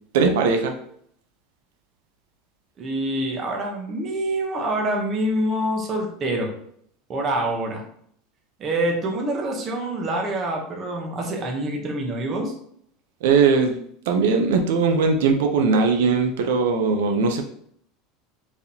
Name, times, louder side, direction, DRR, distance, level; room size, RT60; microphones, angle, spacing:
voice 1, 0.1-0.7 13.2-13.7 14.1-17.4, right 4 dB, 85° right, 4 dB, 0.6 m, -19 dB
voice 2, 2.8-6.5 7.1-7.8 8.6-12.5, right 1 dB, 25° right, 1 dB, 0.9 m, -26 dB
4.7 x 3.4 x 2.8 m, 0.66 s
supercardioid pair, 165°, 0 cm